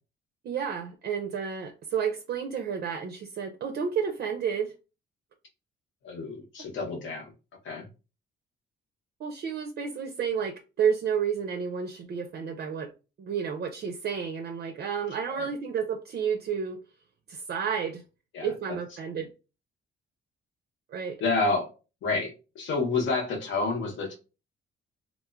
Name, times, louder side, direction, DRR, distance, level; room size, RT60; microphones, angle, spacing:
voice 1, 0.4-4.7 9.2-12.9 13.2-16.8 17.3-18.0 18.4-19.3 20.9-21.2, right 7 dB, 55° right, 0.4 m, -31 dB
voice 2, 6.0-7.3 7.6-7.9 15.3-15.5 18.3-18.8 21.2-21.7 22.0-24.1, left 3 dB, 75° left, 0.9 m, -29 dB
3.0 x 2.0 x 2.3 m
cardioid pair, 90°, 20 cm